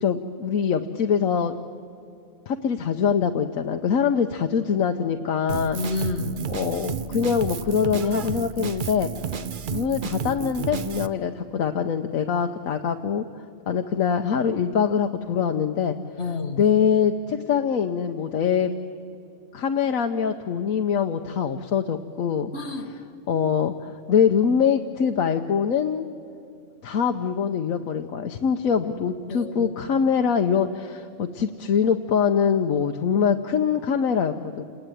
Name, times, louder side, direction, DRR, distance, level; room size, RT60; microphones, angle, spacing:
voice 1, 0.0-1.5 2.5-5.8 6.5-9.1 9.7-13.2 13.7-15.9 16.6-18.7 19.5-22.5 23.3-26.1 26.8-34.6, left 7 dB, 85° left, 5 dB, 1.3 m, -23 dB
Drum kit, 5.5-11.1, right 7 dB, 45° right, 0.7 m, -31 dB
voice 2, 5.7-6.4 16.2-16.7 22.5-22.9 29.3-29.7, left 4 dB, 55° left, 6 dB, 1.9 m, -29 dB
28.0 x 20.0 x 9.2 m, 2.6 s
omnidirectional pair, 1.4 m